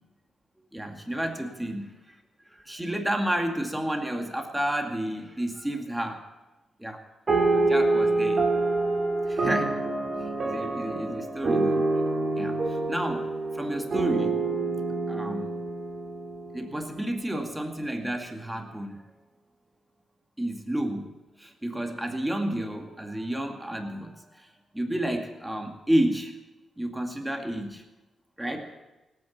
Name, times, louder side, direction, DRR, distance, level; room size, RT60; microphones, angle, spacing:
voice 1, 0.7-1.9 2.5-6.2 6.8-7.0 7.5-8.4 9.3-9.8 10.4-12.0 12.3-13.3 13.5-14.4 15.1-15.5 16.5-19.0 20.4-21.1 21.4-24.5 24.7-26.3 26.8-27.8 28.4-28.7, right 1 dB, 10° right, 4 dB, 2.2 m, -31 dB
sound 1, 7.3-17.0, right 3 dB, 45° right, 2.5 m, -26 dB
18.0 x 9.1 x 7.4 m, 1.1 s
cardioid pair, 80°, 0 cm